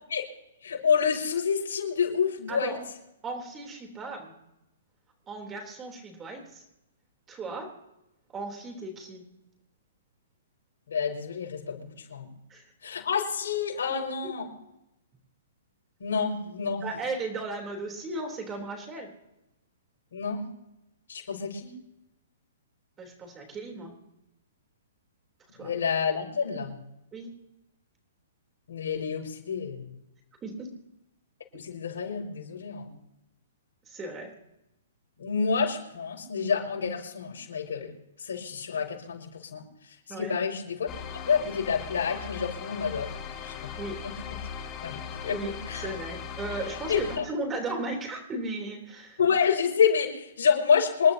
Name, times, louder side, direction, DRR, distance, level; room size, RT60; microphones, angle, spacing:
voice 1, 0.6-2.8 10.9-12.3 12.8-14.5 16.0-16.8 20.1-20.5 21.1-21.8 25.6-26.8 28.7-29.9 31.5-32.9 35.2-37.9 38.2-39.6 40.2-40.9 41.3-43.1 43.4-43.8 44.0-44.1 44.8-45.9 46.9-47.2 49.2-51.1, left 6 dB, 85° left, 0 dB, 5.8 m, -28 dB
voice 2, 2.5-2.8 3.2-4.4 5.3-6.6 7.3-7.7 8.3-9.2 12.5-12.7 13.9-14.0 16.8-19.1 23.0-23.9 25.5-25.7 27.1-27.4 30.4-30.7 33.9-34.3 40.1-40.3 43.8-44.0 45.3-49.2, right 2 dB, 15° right, 2 dB, 3.5 m, -36 dB
sound 1, 40.9-47.2, left 7 dB, 25° left, 2.2 m, -39 dB
27.5 x 12.0 x 2.9 m, 0.89 s
hypercardioid pair, 155°, 0 cm